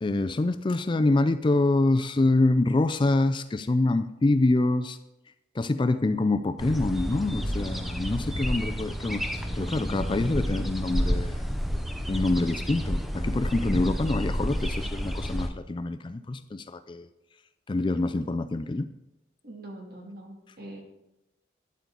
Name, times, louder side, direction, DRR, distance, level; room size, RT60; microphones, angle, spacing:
voice 1, 0.0-5.0 5.5-11.5 12.1-17.1 17.7-18.9, left 2 dB, 25° left, 10 dB, 0.3 m, -26 dB
sound 1, 6.6-15.5, equal, ahead, 0.7 m, -30 dB
voice 2, 19.4-20.8, right 1 dB, 50° right, 0 dB, 2.4 m, -43 dB
12.5 x 9.6 x 3.9 m, 0.95 s
head